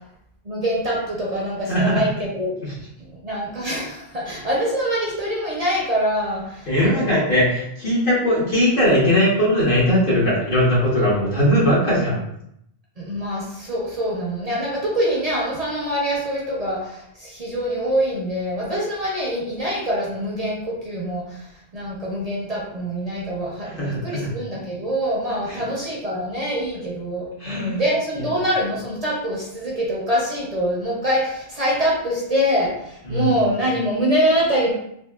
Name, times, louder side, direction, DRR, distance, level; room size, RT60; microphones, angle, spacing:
voice 1, 0.4-2.6 3.2-7.2 13.0-21.4 21.7-34.7, equal, 45° right, -4 dB, 0.6 m, -24 dB
voice 2, 1.7-2.0 6.7-12.2 23.6-24.3 25.5-25.7 27.4-27.8 33.0-33.3, equal, 55° left, -7 dB, 1.3 m, -19 dB
3.5 x 2.3 x 2.3 m, 0.75 s
omnidirectional pair, 1.0 m